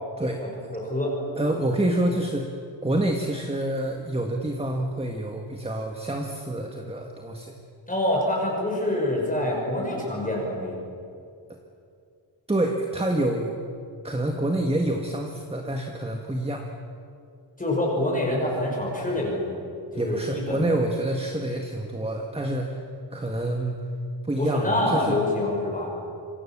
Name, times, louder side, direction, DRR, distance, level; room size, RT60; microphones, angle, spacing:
voice 1, 0.4-1.1 7.9-10.8 17.6-19.6 19.9-20.7 24.4-25.9, left 1 dB, 20° left, -2 dB, 5.8 m, -26 dB
voice 2, 1.4-2.5 2.8-7.5 12.5-13.5 14.0-16.7 19.9-22.8 23.1-23.8 24.3-25.2, right 1 dB, 15° right, 2 dB, 1.7 m, -27 dB
27.0 x 24.0 x 7.4 m, 2.5 s
wide cardioid pair, 150°, 45 cm